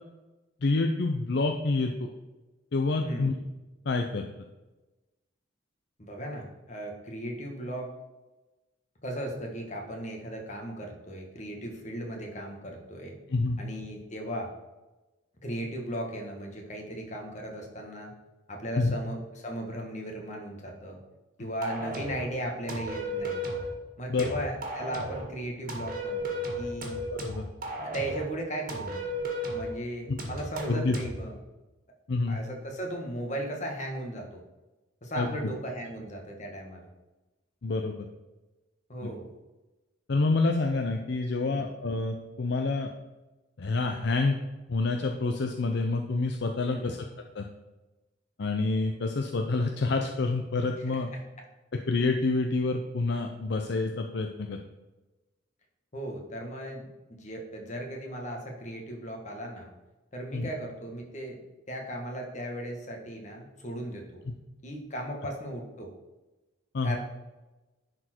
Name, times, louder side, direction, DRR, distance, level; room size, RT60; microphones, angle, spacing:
voice 1, 0.6-1.9 2.7-3.3 3.9-4.2 13.3-13.6 18.8-18.9 24.1-24.3 27.1-27.4 30.1-30.2 30.7-31.0 32.1-32.4 35.2-35.3 37.6-37.9 39.0-39.1 40.1-42.9 43.6-44.4 44.7-47.1 47.3-47.5 48.4-51.1 51.9-54.6 60.3-60.5 64.3-64.4 66.7-67.0, left 3 dB, 60° left, 4 dB, 0.6 m, -27 dB
voice 2, 6.0-7.9 9.0-13.1 13.6-14.5 15.4-18.1 18.5-21.0 21.4-23.5 24.0-27.0 27.8-29.0 29.5-31.4 32.3-34.4 35.0-36.9 38.9-39.3 41.4-41.7 46.6-47.0 50.9-51.2 55.9-59.7 60.1-61.4 61.7-64.2 64.6-65.9 66.8-67.0, right 1 dB, 40° left, 1 dB, 1.5 m, -37 dB
sound 1, 21.6-22.3 22.7-23.7 24.2-25.3 25.7-28.3 28.7-29.7 30.2-31.2, equal, 45° right, 1.8 m, -34 dB
10.5 x 4.5 x 4.4 m, 1.1 s
head